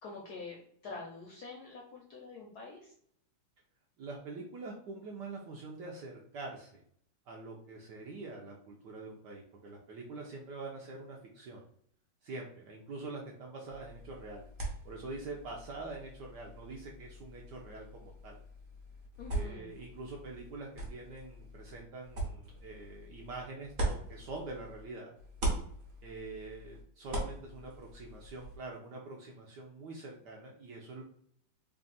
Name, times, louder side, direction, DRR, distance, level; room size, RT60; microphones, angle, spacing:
voice 1, 0.0-2.9 19.2-19.7, left 3 dB, 70° left, -1 dB, 0.9 m, -46 dB
voice 2, 4.0-6.8 7.3-11.7 12.2-14.5 14.8-18.4 19.3-25.1 26.0-31.0, right 3 dB, 75° right, -1 dB, 1.0 m, -45 dB
sound 1, 13.7-24.9 25.2-28.6, right 2 dB, 45° right, 0.9 m, -41 dB
3.4 x 2.4 x 3.9 m, 0.65 s
omnidirectional pair, 2.4 m